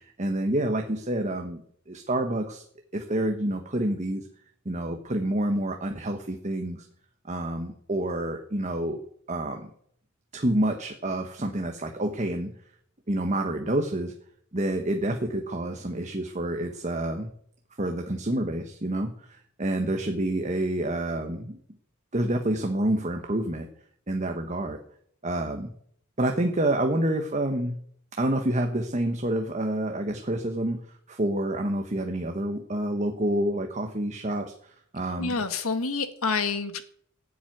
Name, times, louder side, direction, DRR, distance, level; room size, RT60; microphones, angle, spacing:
voice 1, 0.0-2.6 2.9-4.3 4.6-6.9 7.2-9.7 10.3-12.5 13.1-14.1 14.5-17.3 17.8-21.6 22.1-23.7 24.1-24.8 25.2-25.7 26.2-27.8 28.2-35.4, right 1 dB, 35° right, 4 dB, 1.2 m, -28 dB
voice 2, 35.2-36.8, left 4 dB, 80° left, 9 dB, 1.8 m, -28 dB
16.5 x 7.7 x 9.3 m, 0.66 s
head